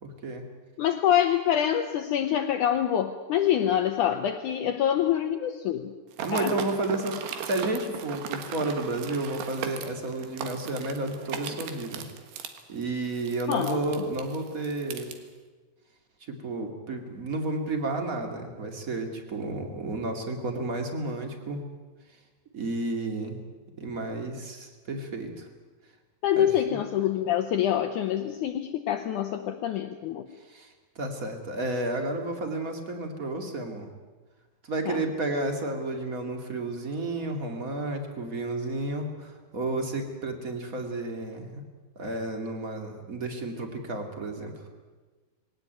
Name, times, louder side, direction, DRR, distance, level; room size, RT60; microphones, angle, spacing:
voice 1, 0.0-0.4 6.2-12.1 12.7-15.1 16.3-21.7 22.5-23.4 23.8-25.5 26.4-26.8 30.5-33.9 34.6-41.6 42.0-44.5, right 2 dB, 25° right, 4 dB, 2.0 m, -32 dB
voice 2, 0.8-5.9 6.3-6.6 13.5-13.9 26.2-30.3 34.9-35.0, left 10 dB, 80° left, 7 dB, 1.8 m, -26 dB
sound 1, 6.1-15.2, right 8 dB, 85° right, 3.6 m, -38 dB
21.5 x 17.5 x 9.3 m, 1.3 s
omnidirectional pair, 4.7 m